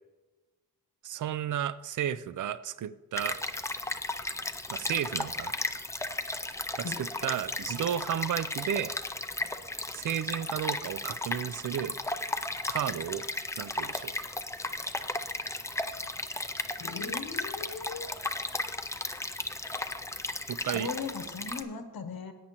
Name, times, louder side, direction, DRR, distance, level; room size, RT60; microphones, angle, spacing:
voice 1, 1.0-3.4 4.7-5.5 6.7-8.9 9.9-12.0 12.7-13.2 13.6-14.1 19.5-19.6 20.5-20.9, right 10 dB, 55° right, 16 dB, 0.4 m, -33 dB
Stream, 3.2-21.6, left 2 dB, 10° left, 0.4 m, -35 dB
voice 2, 16.8-18.1 20.7-22.3, left 5 dB, 75° left, 8 dB, 1.0 m, -38 dB
15.5 x 8.9 x 2.9 m, 1.2 s
wide cardioid pair, 140°, 37 cm